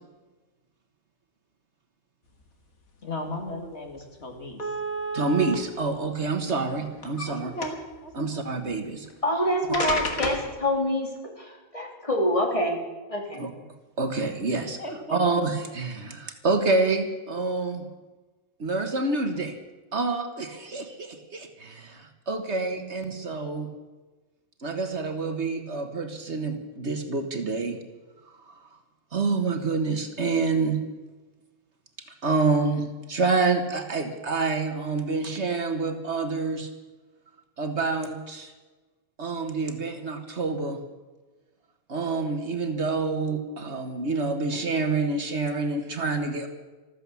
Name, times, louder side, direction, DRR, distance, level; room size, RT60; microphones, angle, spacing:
voice 1, 3.0-4.7 7.3-8.5 14.6-15.2, left 1 dB, 50° left, 3 dB, 2.3 m, -36 dB
sound 1, 3.5-3.6 3.9-4.0 4.6-5.5 6.4-7.3 7.6-8.0 9.1-9.2 9.7-10.5, equal, 80° left, 2.5 m, -30 dB
voice 2, 5.1-7.5 8.1-9.1 13.4-13.5 14.0-14.8 15.1-17.8 18.6-19.5 19.9-23.7 24.6-27.8 28.5-28.6 29.1-30.8 32.2-36.7 37.6-38.5 39.2-40.8 41.9-46.5, right 3 dB, 55° right, 6 dB, 1.6 m, -27 dB
voice 3, 9.2-11.1 11.4-12.8 13.1-13.4, left 1 dB, 25° left, 0 dB, 3.0 m, -26 dB
14.5 x 14.0 x 7.0 m, 1.2 s
omnidirectional pair, 1.4 m